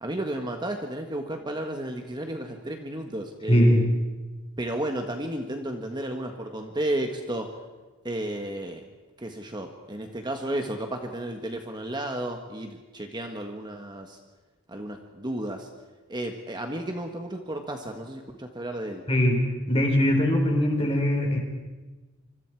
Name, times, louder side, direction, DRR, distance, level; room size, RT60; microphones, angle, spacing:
voice 1, 0.0-3.9 4.6-7.5 8.0-8.8 9.2-14.2 14.7-15.7 16.1-19.0, right 1 dB, 20° right, 4 dB, 1.5 m, -33 dB
voice 2, 3.5-3.9 19.1-19.4 19.7-21.4, equal, 25° left, 2 dB, 4.1 m, -21 dB
26.5 x 25.5 x 4.7 m, 1.3 s
head